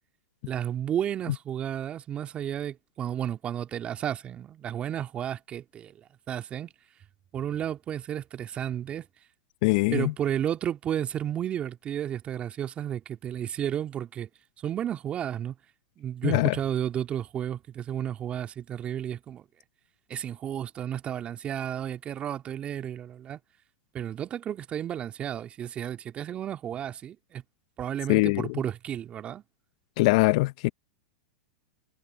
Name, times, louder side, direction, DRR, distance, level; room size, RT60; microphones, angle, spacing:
voice 1, 0.4-5.9 6.3-6.7 7.3-9.1 9.9-14.3 14.6-15.6 16.0-19.5 20.1-23.4 23.9-27.4 27.8-29.4, right 10 dB, 30° right, 2.4 m, -32 dB
voice 2, 9.6-10.1 16.2-16.6 28.1-28.6 30.0-30.7, left 23 dB, 55° left, 0.6 m, -22 dB
hypercardioid pair, 115°, 4 cm